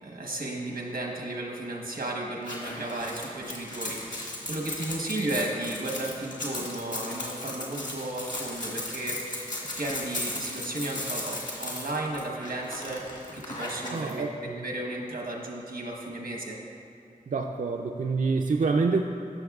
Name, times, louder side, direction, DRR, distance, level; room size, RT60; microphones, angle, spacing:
voice 1, 0.0-9.5 9.8-14.2 14.6-16.6, right 1 dB, 90° right, -1 dB, 1.1 m, -34 dB
sound 1, 2.4-14.1, left 1 dB, 60° left, 1.7 m, -36 dB
voice 2, 13.9-14.6 17.3-19.0, right 4 dB, 60° right, 2 dB, 0.4 m, -27 dB
14.0 x 5.8 x 2.4 m, 2.6 s
wide cardioid pair, 55°, 15 cm